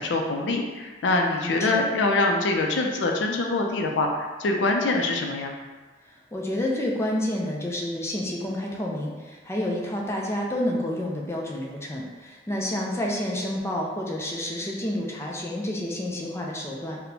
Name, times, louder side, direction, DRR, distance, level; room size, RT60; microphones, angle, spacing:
voice 1, 0.0-5.5, left 2 dB, 75° left, 2 dB, 0.4 m, -24 dB
voice 2, 1.4-1.8 6.3-17.0, left 1 dB, 15° left, -2 dB, 0.4 m, -29 dB
4.2 x 2.1 x 2.7 m, 1.3 s
head